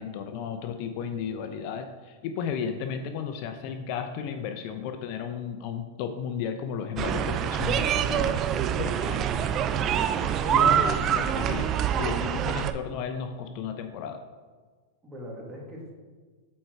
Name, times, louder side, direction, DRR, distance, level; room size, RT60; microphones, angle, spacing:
voice 1, 0.0-9.2 10.2-14.2, left 7 dB, 50° left, 7 dB, 0.6 m, -34 dB
sound 1, 7.0-12.7, right 9 dB, 35° right, 0.4 m, -25 dB
voice 2, 8.7-10.1 15.0-15.9, equal, 15° right, -3 dB, 2.1 m, -44 dB
7.3 x 4.4 x 4.5 m, 1.4 s
hypercardioid pair, 125°, 0 cm